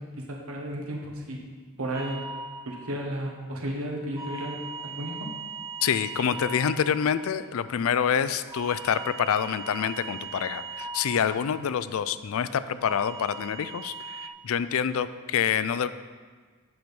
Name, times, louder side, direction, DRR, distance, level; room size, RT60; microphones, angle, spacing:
voice 1, 0.0-1.4 1.8-2.3 2.6-5.3, right 1 dB, 80° right, 0 dB, 1.5 m, -33 dB
sound 1, 1.9-3.7 4.1-8.0 8.5-12.4 12.8-14.3, right 3 dB, 15° right, 0.5 m, -40 dB
voice 2, 5.8-15.9, left 8 dB, 75° left, 14 dB, 0.4 m, -27 dB
7.9 x 6.2 x 5.3 m, 1.5 s
head